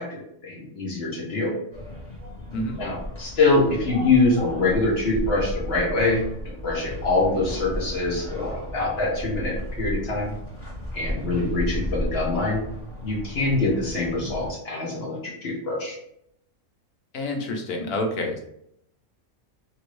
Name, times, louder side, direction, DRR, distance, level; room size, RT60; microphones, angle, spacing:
voice 1, 0.0-1.5 2.8-10.3 10.9-12.6 13.0-16.0, left 3 dB, 50° left, -3 dB, 1.0 m, -24 dB
sound 1, 1.7-14.5, equal, 20° left, 1.5 m, -34 dB
voice 2, 17.1-18.4, left 1 dB, 85° left, 3 dB, 1.2 m, -28 dB
3.0 x 2.6 x 3.0 m, 0.73 s
omnidirectional pair, 1.5 m